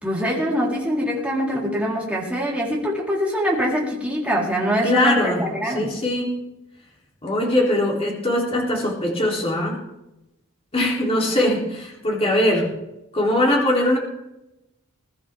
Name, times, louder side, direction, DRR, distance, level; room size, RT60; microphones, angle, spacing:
voice 1, 0.0-5.9 11.3-11.4, equal, 5° right, -5 dB, 4.2 m, -23 dB
voice 2, 4.8-6.4 7.2-9.8 10.7-12.7 13.1-14.0, left 1 dB, 30° left, -2 dB, 3.5 m, -21 dB
21.5 x 12.5 x 3.6 m, 0.89 s
head